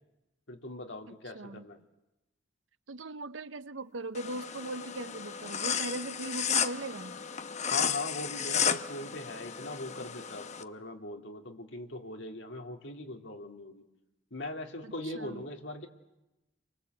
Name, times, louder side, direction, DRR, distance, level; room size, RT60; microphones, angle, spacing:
voice 1, 0.5-1.8 7.7-13.8 14.3-15.9, left 2 dB, 70° left, 3.0 m, -40 dB
voice 2, 1.1-1.6 2.9-7.2 14.8-15.4, right 2 dB, 85° right, 0.9 m, -39 dB
sound 1, 4.2-10.6, left 7 dB, 40° left, 1.0 m, -33 dB
29.5 x 24.0 x 8.1 m
head